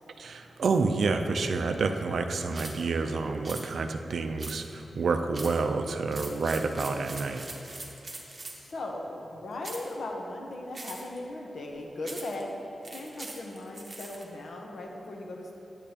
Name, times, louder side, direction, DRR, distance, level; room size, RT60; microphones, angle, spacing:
voice 1, 0.2-7.4, right 4 dB, 65° right, 6 dB, 0.4 m, -29 dB
sound 1, 2.5-2.8 3.4-3.7 4.4-4.8 5.3-5.6 6.1-8.7 9.6-9.9 10.7-11.2 12.0-12.4 12.8-14.2, right 2 dB, 30° right, 0.9 m, -42 dB
voice 2, 8.2-12.5 12.9-15.5, left 2 dB, 65° left, 0 dB, 0.9 m, -38 dB
9.1 x 8.6 x 2.9 m, 3.0 s
wide cardioid pair, 175°, 0 cm